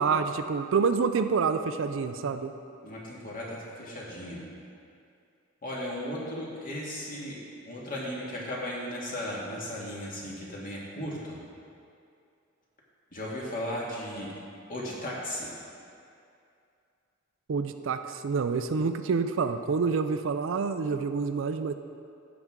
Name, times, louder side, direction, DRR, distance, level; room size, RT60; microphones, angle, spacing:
voice 1, 0.0-2.5 17.5-21.7, right 5 dB, 65° right, 9 dB, 0.4 m, -27 dB
voice 2, 2.8-4.4 5.6-7.4 7.6-11.4 13.1-14.3 14.7-15.5, left 1 dB, 45° left, -5 dB, 1.9 m, -36 dB
14.5 x 6.0 x 3.7 m, 2.5 s
head